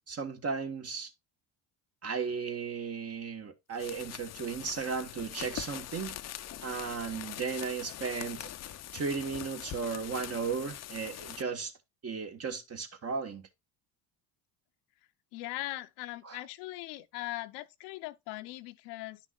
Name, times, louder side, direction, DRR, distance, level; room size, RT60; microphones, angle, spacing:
voice 1, 0.1-1.1 2.0-6.2 6.6-8.5 8.9-11.7 12.0-13.5 16.2-16.4, right 5 dB, 35° right, 1.5 m, -35 dB
sound 1, 3.7-11.4, left 12 dB, 40° left, 0.6 m, -43 dB
voice 2, 15.3-19.2, left 17 dB, 75° left, 0.8 m, -40 dB
10.0 x 5.9 x 2.3 m
supercardioid pair, 85°, 41 cm